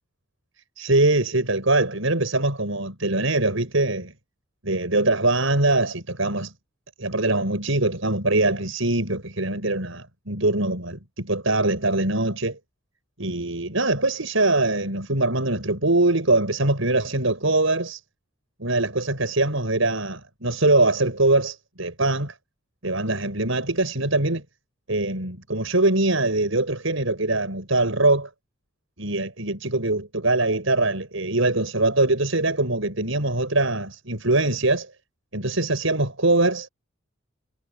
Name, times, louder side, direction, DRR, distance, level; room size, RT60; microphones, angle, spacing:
voice 1, 0.8-4.1 4.6-6.5 7.0-12.6 13.2-18.0 18.6-22.3 22.8-24.4 24.9-28.3 29.0-34.9 35.3-36.7, right 2 dB, 75° right, 6.4 m, -22 dB
head